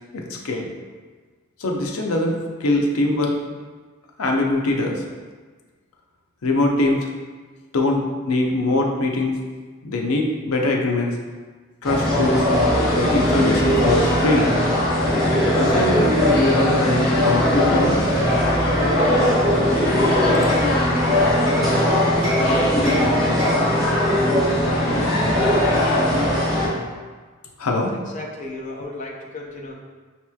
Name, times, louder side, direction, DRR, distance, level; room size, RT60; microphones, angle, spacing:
voice 1, 0.1-0.7 1.6-3.3 4.2-5.0 6.4-7.1 7.7-9.4 9.8-11.1 11.8-12.5 12.9-14.5 15.3-18.1 27.6-28.0, left 2 dB, 80° left, 1 dB, 0.6 m, -22 dB
sound 1, 11.8-26.7, left 1 dB, ahead, 1.1 m, -19 dB
Hammer, 19.2-21.7 22.2-23.8, right 1 dB, 25° right, 0.9 m, -34 dB
voice 2, 27.9-29.7, left 2 dB, 35° left, -2 dB, 0.5 m, -34 dB
5.6 x 2.9 x 2.3 m, 1.4 s
head